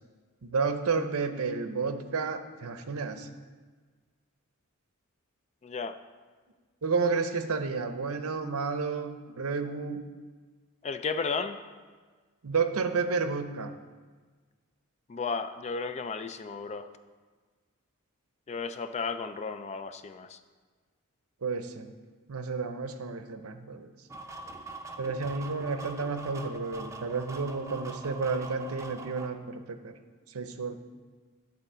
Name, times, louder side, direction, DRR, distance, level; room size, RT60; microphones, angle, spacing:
voice 1, 0.4-3.3 6.8-10.0 12.4-13.7 21.4-21.9 22.3-23.9 25.0-29.9 30.3-30.8, right 4 dB, 80° right, 8 dB, 0.7 m, -31 dB
voice 2, 5.6-6.0 10.8-11.6 15.1-16.9 18.5-20.4, left 4 dB, 30° left, 10 dB, 0.3 m, -34 dB
sound 1, 24.1-29.3, right 3 dB, 15° right, 0.6 m, -43 dB
11.5 x 4.0 x 6.7 m, 1.4 s
head